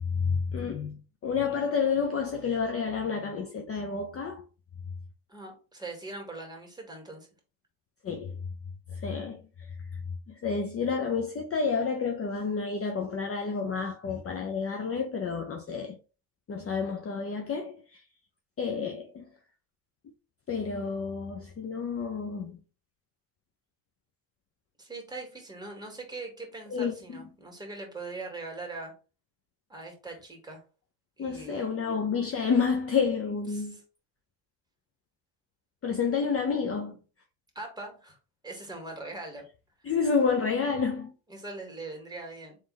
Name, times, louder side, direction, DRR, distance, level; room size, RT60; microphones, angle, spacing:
voice 1, 0.0-4.4 8.0-8.4 8.9-9.4 9.9-10.0 10.3-16.0 16.5-18.0 18.6-19.3 20.5-22.6 26.7-27.0 31.2-33.8 35.8-37.0 39.8-41.1, left 5 dB, 30° left, 0.7 m, -29 dB
voice 2, 5.3-7.3 24.8-28.9 29.7-30.6 31.2-31.7 33.5-33.8 37.6-38.2 38.4-39.4 41.3-42.6, right 3 dB, 10° right, 2.1 m, -41 dB
3.5 x 3.2 x 4.0 m
hypercardioid pair, 75°, 49 cm